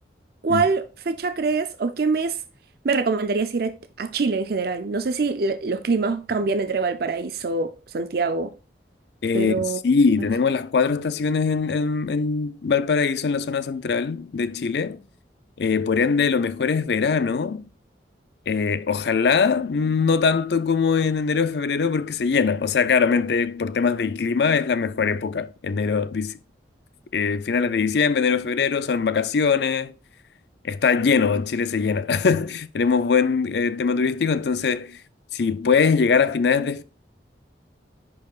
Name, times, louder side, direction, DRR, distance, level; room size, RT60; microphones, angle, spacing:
voice 1, 0.4-2.4 2.8-8.5 9.3-9.8, right 4 dB, 60° right, 0.5 m, -24 dB
voice 2, 9.2-15.0 15.6-17.7 18.5-26.4 27.1-29.9 30.6-35.0 35.3-36.8, left 5 dB, 65° left, 0.5 m, -22 dB
10.5 x 4.7 x 2.4 m
head